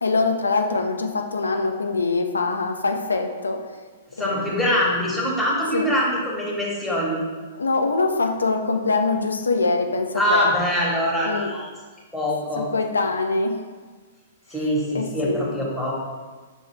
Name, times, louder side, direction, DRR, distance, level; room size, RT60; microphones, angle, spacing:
voice 1, 0.0-3.6 4.2-4.6 5.7-5.9 7.5-10.5 11.3-11.5 12.6-13.6 14.9-15.5, left 3 dB, 75° left, 4 dB, 0.4 m, -23 dB
voice 2, 4.1-7.2 10.1-11.7 12.1-12.7 14.5-15.9, equal, ahead, -6 dB, 1.0 m, -23 dB
5.9 x 2.3 x 3.2 m, 1.4 s
figure-of-eight pair, 110°, 0 cm